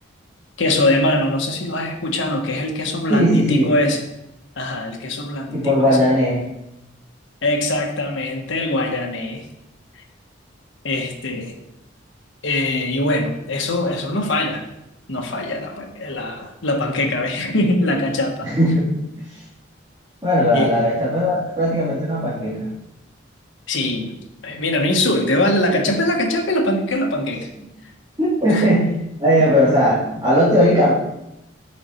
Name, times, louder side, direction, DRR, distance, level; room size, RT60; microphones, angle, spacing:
voice 1, 0.6-4.0 4.6-6.1 7.4-9.4 10.8-11.5 12.4-14.7 15.1-18.5 20.5-20.8 23.7-24.1 24.4-27.5 28.5-28.7, left 1 dB, 75° left, 3 dB, 1.2 m, -22 dB
voice 2, 3.1-3.7 5.5-6.4 18.4-18.9 20.2-22.7 28.2-28.9 29.2-30.9, equal, 20° right, -10 dB, 2.2 m, -17 dB
7.5 x 5.3 x 4.4 m, 0.88 s
head